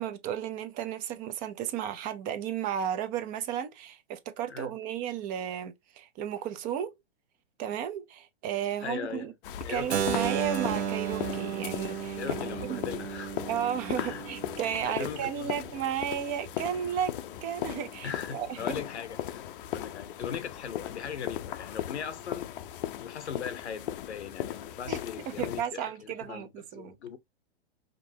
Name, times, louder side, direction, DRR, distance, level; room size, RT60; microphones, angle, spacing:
voice 1, 0.0-6.9 7.6-9.3 9.7-12.8 13.5-17.2 17.4-18.7 24.9-25.0 25.3-26.9, right 9 dB, 25° right, 0.5 m, -33 dB
voice 2, 8.8-9.3 9.6-9.9 12.2-13.3 13.9-14.2 14.8-15.6 18.0-19.4 19.7-22.5 23.0-27.2, left 7 dB, 90° left, 0.9 m, -39 dB
sound 1, 9.4-25.6, left 12 dB, 55° left, 0.6 m, -38 dB
Keyboard (musical), 9.9-15.7, right 9 dB, 85° right, 0.8 m, -34 dB
5.1 x 2.7 x 2.7 m
hypercardioid pair, 130°, 33 cm